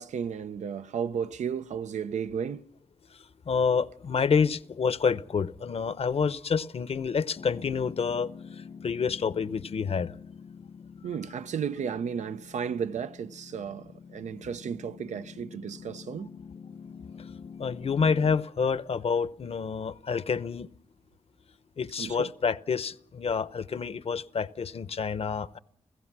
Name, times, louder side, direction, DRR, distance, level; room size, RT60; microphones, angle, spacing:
voice 1, 0.0-2.6 11.0-16.3 22.0-22.3, right 7 dB, 90° right, 0.7 m, -34 dB
voice 2, 3.5-10.1 17.6-20.7 21.8-25.6, left 6 dB, 60° left, 0.8 m, -28 dB
Piano, 7.4-18.4, left 6 dB, 80° left, 1.7 m, -46 dB
29.5 x 16.0 x 6.1 m
cardioid pair, 90°, 12 cm